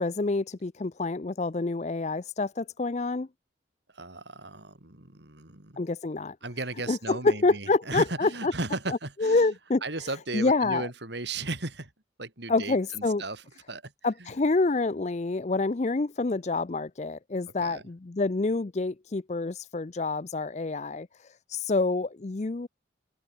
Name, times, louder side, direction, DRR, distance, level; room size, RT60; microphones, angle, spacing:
voice 1, 0.0-3.3 5.8-6.4 6.9-8.5 8.9-9.8 10.3-10.9 12.5-13.2 14.0-22.7, left 3 dB, 35° left, 0.5 m, -27 dB
voice 2, 3.9-5.8 6.4-9.6 9.8-11.9 12.2-13.9 14.2-14.3 17.6-17.8, right 2 dB, 65° right, 3.7 m, -36 dB
open air
head